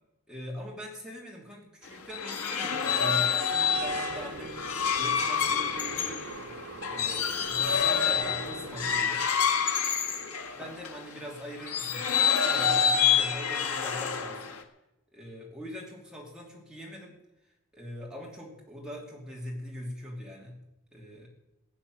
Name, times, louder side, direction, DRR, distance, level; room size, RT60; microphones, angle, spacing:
voice 1, 0.3-4.6 5.0-6.2 6.9-9.2 10.5-14.5 15.1-17.1 17.7-20.6 20.9-21.3, equal, 5° right, -2 dB, 2.8 m, -42 dB
sound 1, 1.9-11.0 11.6-14.6, left 7 dB, 90° left, 1.6 m, -27 dB
sound 2, 3.7-9.0, right 3 dB, 75° right, 1.6 m, -42 dB
15.5 x 8.7 x 7.9 m, 0.95 s
head